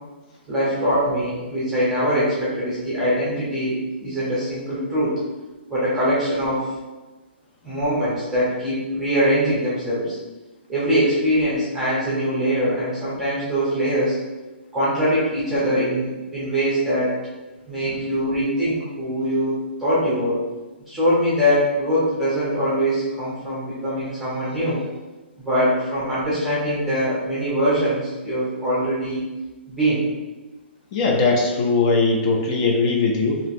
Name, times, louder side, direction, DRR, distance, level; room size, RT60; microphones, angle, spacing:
voice 1, 0.5-5.2 5.7-6.7 7.6-10.2 10.7-14.2 14.7-17.1 17.7-20.4 20.9-24.8 25.4-29.2 29.7-30.0, equal, 5° right, -10 dB, 0.7 m, -22 dB
voice 2, 30.9-33.4, left 3 dB, 25° left, 0 dB, 0.4 m, -20 dB
3.0 x 2.5 x 2.5 m, 1.2 s
hypercardioid pair, 160°, 6 cm